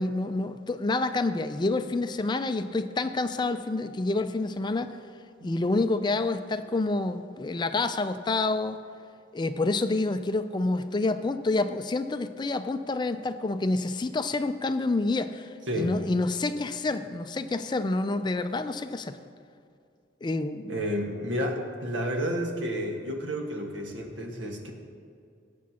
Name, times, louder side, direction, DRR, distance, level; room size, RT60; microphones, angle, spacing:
voice 1, 0.0-5.0 5.4-8.8 9.3-19.2 20.2-20.8, left 2 dB, 25° left, 10 dB, 0.4 m, -28 dB
voice 2, 20.7-24.7, equal, 85° right, 2 dB, 1.5 m, -31 dB
18.5 x 8.4 x 2.9 m, 2.4 s
head